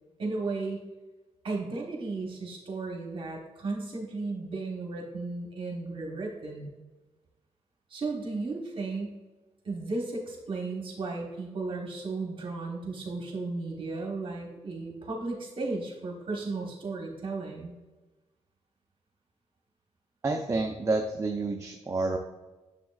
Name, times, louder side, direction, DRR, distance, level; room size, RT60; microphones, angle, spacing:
voice 1, 0.2-0.8 1.4-6.8 7.9-9.2 9.6-17.7, right 3 dB, 50° right, 0 dB, 1.2 m, -35 dB
voice 2, 20.2-22.2, right 3 dB, 25° right, 2 dB, 0.5 m, -29 dB
9.0 x 7.0 x 2.4 m, 1.2 s
wide cardioid pair, 150°, 12 cm